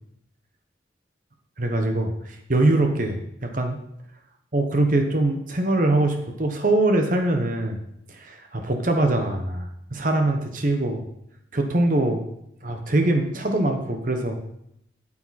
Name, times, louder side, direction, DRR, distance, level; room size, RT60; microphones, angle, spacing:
voice 1, 1.6-3.8 4.5-7.8 8.1-11.0 11.5-12.3 12.6-14.5, right 2 dB, 45° right, 4 dB, 1.0 m, -23 dB
8.7 x 8.7 x 4.2 m, 0.77 s
head